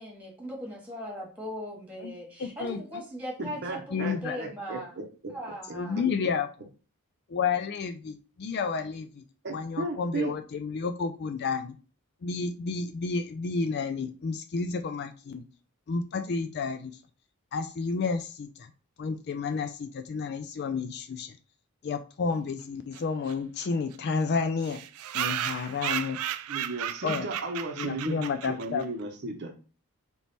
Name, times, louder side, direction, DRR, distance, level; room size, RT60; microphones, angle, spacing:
voice 1, 0.0-4.9 5.3-6.0, equal, 5° right, -3 dB, 1.6 m, -39 dB
voice 2, 2.4-2.8 3.9-4.4 5.7-6.5 7.3-9.2 9.5-11.8 12.2-15.4 15.9-17.0 17.5-18.7 19.0-21.4 21.8-24.8 25.1-26.2 27.0-27.3 27.8-28.8, left 5 dB, 45° left, 7 dB, 0.3 m, -31 dB
voice 3, 3.4-5.3 5.7-5.8 9.4-10.3 26.5-28.2 28.5-29.5, right 2 dB, 50° right, 3 dB, 0.7 m, -35 dB
sound 1, 22.9-23.0 23.3-23.4 23.6-23.7 23.9-24.0 24.6-28.8, right 11 dB, 75° right, 0.3 m, -34 dB
3.5 x 3.0 x 4.0 m, 0.36 s
head